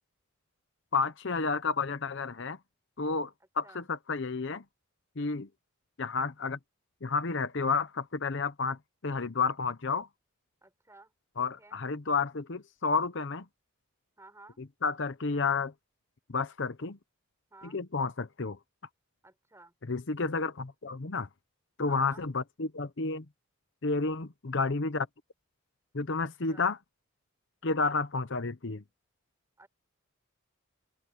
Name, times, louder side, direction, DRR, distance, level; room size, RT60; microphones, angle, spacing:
voice 1, 0.9-2.6 3.0-4.6 5.2-5.5 6.0-6.6 7.0-10.1 11.4-13.5 14.6-15.7 16.3-17.0 17.6-18.6 19.9-21.3 21.8-23.2 23.8-25.1 25.9-26.8 27.6-28.8, left 4 dB, 55° left, 0.8 m, -31 dB
voice 2, 10.6-11.8 14.2-14.6 17.5-17.8 19.2-19.7 21.8-22.2 26.2-26.7 29.6-29.7, right 2 dB, 15° right, 6.1 m, -54 dB
open air
head